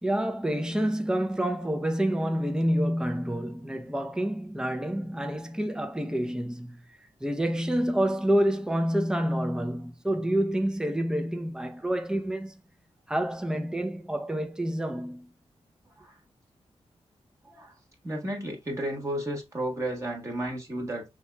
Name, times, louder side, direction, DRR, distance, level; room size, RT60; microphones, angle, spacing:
voice 1, 0.0-6.8 7.2-12.6 13.1-15.3, right 1 dB, 5° right, 0.6 m, -28 dB
voice 2, 17.4-17.7 18.0-21.0, right 1 dB, 25° right, 1.3 m, -33 dB
5.7 x 2.9 x 2.2 m
wide cardioid pair, 95°, 11 cm